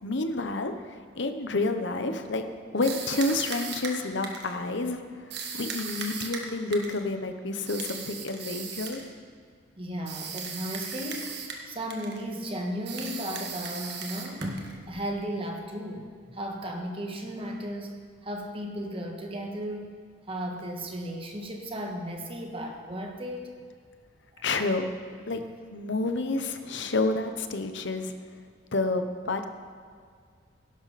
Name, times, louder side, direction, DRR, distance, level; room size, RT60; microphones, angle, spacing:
voice 1, 0.0-2.5 2.7-9.0 24.4-24.8 25.3-25.4 25.7-28.1 28.7-29.4, left 2 dB, 65° left, 7 dB, 1.0 m, -29 dB
sound 1, 2.8-4.6 5.3-7.0 7.7-9.1 10.1-11.7 11.9-12.2 12.9-14.8, right 6 dB, 60° right, 1.6 m, -37 dB
voice 2, 9.8-11.3 11.6-19.9 20.3-23.5 24.3-24.5 25.3-25.4, equal, 30° right, 2 dB, 1.5 m, -35 dB
17.0 x 11.5 x 4.2 m, 2.1 s
head